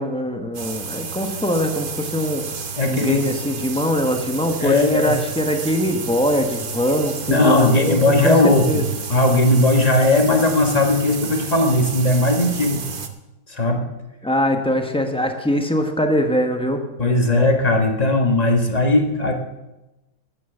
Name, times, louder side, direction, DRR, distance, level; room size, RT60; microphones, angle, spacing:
voice 1, 0.0-8.8 14.2-16.8, equal, 5° left, 5 dB, 0.6 m, -22 dB
sound 1, 0.5-13.1, right 5 dB, 80° right, 0.4 m, -31 dB
voice 2, 2.8-3.2 4.6-5.1 7.3-8.8 9.1-12.9 13.5-13.8 17.0-19.3, left 2 dB, 20° left, 4 dB, 1.2 m, -18 dB
12.0 x 9.3 x 7.1 m, 0.99 s
omnidirectional pair, 2.3 m